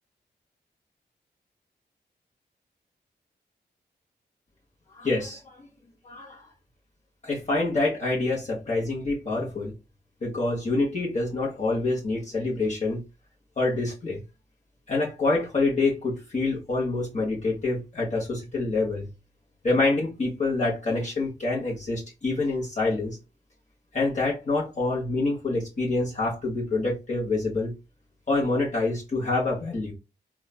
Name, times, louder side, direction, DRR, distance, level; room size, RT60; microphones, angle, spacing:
voice 1, 5.0-5.5 6.0-6.4 7.2-9.7 10.2-13.0 13.6-14.2 14.9-19.1 19.6-23.2 23.9-27.7 28.3-29.9, left 3 dB, 40° left, 1.1 m, -26 dB
3.0 x 2.3 x 2.2 m
cardioid pair, 45°, 18 cm